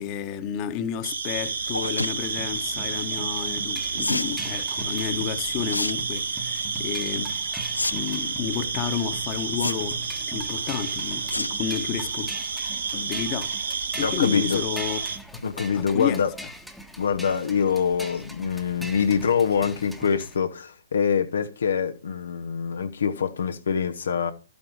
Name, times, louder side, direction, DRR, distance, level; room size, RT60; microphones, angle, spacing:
voice 1, 0.0-7.3 7.9-12.3 12.9-15.0 15.3-16.2, left 9 dB, 30° left, 1.4 m, -31 dB
sound 1, 1.0-15.2, right 5 dB, 70° right, 1.9 m, -30 dB
sound 2, 1.7-2.1 4.0-4.3 5.7-5.9 6.3-6.6 7.7-7.9 8.2-8.3 9.6-10.1 11.3-11.6 12.0-12.2 12.6-12.7 12.9-13.0, left 2 dB, 85° left, 0.5 m, -28 dB
sound 3, 2.2-20.4, right 1 dB, ahead, 1.4 m, -42 dB
voice 2, 14.0-14.6 15.4-16.3 17.0-24.3, left 6 dB, 65° left, 1.0 m, -25 dB
13.0 x 8.4 x 4.6 m
figure-of-eight pair, 120°, 0 cm